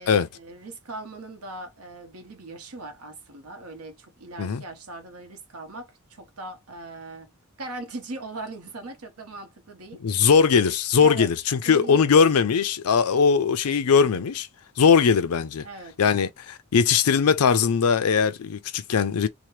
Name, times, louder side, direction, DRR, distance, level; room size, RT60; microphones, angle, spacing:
voice 1, 0.0-7.3 7.6-10.3 11.0-11.3 11.6-12.0 15.6-16.0, right 2 dB, 80° right, 1.0 m, -39 dB
voice 2, 10.0-14.5 14.8-15.7 16.0-19.3, left 6 dB, 90° left, 0.5 m, -20 dB
2.8 x 2.1 x 3.2 m
head